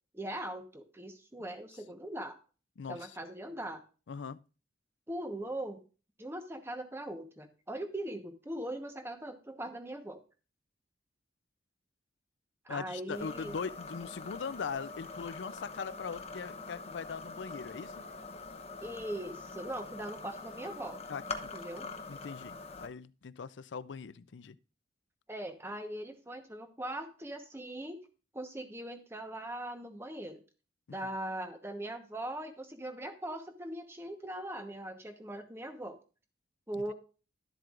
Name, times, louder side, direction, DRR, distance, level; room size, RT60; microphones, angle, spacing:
voice 1, 0.1-2.4 2.9-3.8 5.1-5.8 6.2-10.2 12.6-13.5 18.8-21.0 21.5-21.9 25.3-28.0 28.3-30.4 30.9-36.0 36.7-36.9, right 1 dB, 15° right, 1.1 m, -40 dB
voice 2, 2.8-3.2 4.1-4.4 12.7-18.0 21.1-21.5 22.1-24.6 30.9-31.1 36.7-36.8, left 5 dB, 80° left, 0.5 m, -41 dB
sound 1, 13.1-22.9, left 3 dB, 35° left, 0.8 m, -44 dB
12.0 x 7.6 x 2.5 m
head